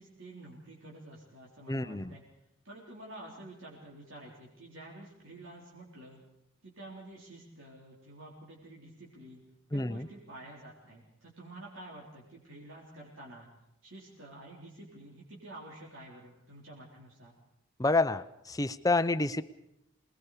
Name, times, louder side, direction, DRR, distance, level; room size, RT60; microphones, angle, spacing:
voice 1, 0.0-2.2 2.6-6.2 6.6-9.4 9.7-13.5 13.8-17.3, right 1 dB, 80° right, -3 dB, 3.8 m, -49 dB
voice 2, 1.7-2.1 9.7-10.1 17.8-19.4, left 2 dB, 15° left, 13 dB, 0.6 m, -28 dB
25.5 x 20.0 x 5.0 m, 0.85 s
head